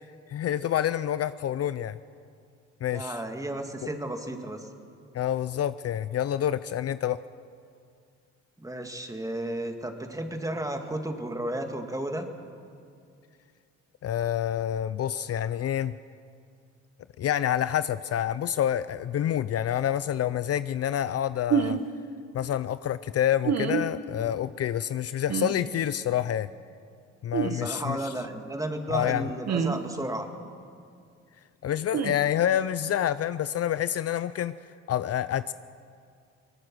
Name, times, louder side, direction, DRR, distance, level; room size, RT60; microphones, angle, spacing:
voice 1, 0.3-2.0 2.8-3.2 3.8-3.9 5.1-7.2 14.0-15.9 17.2-21.8 22.3-26.5 27.2-28.1 28.9-29.3 31.6-34.5 34.9-35.5, left 10 dB, 55° left, 14 dB, 0.5 m, -27 dB
voice 2, 2.9-4.7 8.6-12.3 27.4-30.3, right 1 dB, 10° right, 5 dB, 2.2 m, -33 dB
sound 1, 21.5-21.8 23.4-23.8 25.3-25.5 27.3-27.6 29.5-29.8 31.9-32.1, right 7 dB, 60° right, 1.4 m, -26 dB
22.5 x 20.0 x 6.2 m, 2.3 s
cardioid pair, 90°, 30 cm